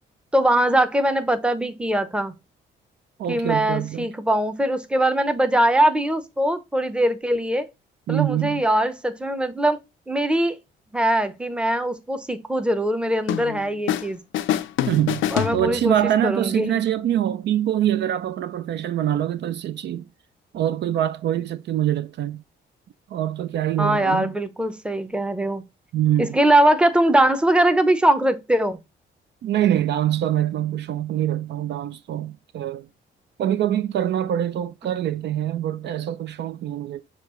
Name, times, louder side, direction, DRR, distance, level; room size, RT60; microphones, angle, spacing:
voice 1, 0.3-2.3 3.3-7.7 8.1-9.8 10.1-10.6 10.9-14.2 15.3-15.9 16.2-16.8 23.8-25.6 26.2-28.8, right 1 dB, 5° right, 0.7 m, -21 dB
voice 2, 3.2-4.1 8.1-8.6 14.9-15.2 15.5-20.0 20.5-22.4 23.1-24.4 25.9-26.4 29.4-32.9 33.4-37.0, right 11 dB, 60° right, 0.4 m, -24 dB
sound 1, 13.3-14.1 14.3-16.1, left 11 dB, 75° left, 0.5 m, -26 dB
6.5 x 2.4 x 3.0 m
cardioid pair, 90°, 20 cm